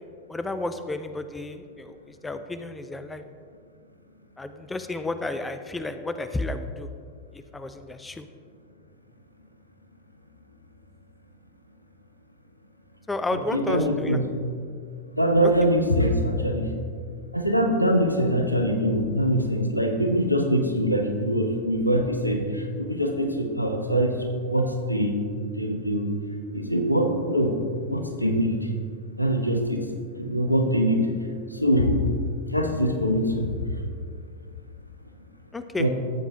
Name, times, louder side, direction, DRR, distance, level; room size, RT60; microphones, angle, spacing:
voice 1, 0.3-3.2 4.4-6.9 7.3-8.3 13.1-14.2 15.4-15.5 35.5-35.9, left 2 dB, 10° left, 9 dB, 0.4 m, -32 dB
voice 2, 13.5-14.3 15.1-16.7 17.3-24.2 24.5-25.2 25.5-26.1 26.5-27.6 27.9-28.7 29.2-29.8 30.2-31.1 31.5-32.0 32.5-33.5 35.8-35.9, equal, 90° left, 4 dB, 0.9 m, -23 dB
14.0 x 7.9 x 2.7 m, 2.3 s
figure-of-eight pair, 90°, 0 cm